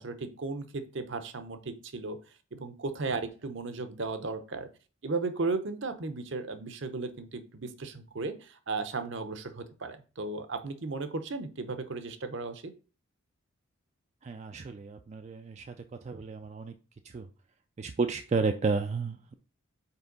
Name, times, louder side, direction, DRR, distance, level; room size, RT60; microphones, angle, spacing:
voice 1, 0.0-2.2 2.5-4.7 5.0-12.7, right 3 dB, 60° right, 9 dB, 0.7 m, -35 dB
voice 2, 14.2-15.8 16.0-16.7 17.0-17.3 17.8-19.3, right 4 dB, 30° right, 7 dB, 0.3 m, -32 dB
5.5 x 4.4 x 3.8 m, 0.36 s
head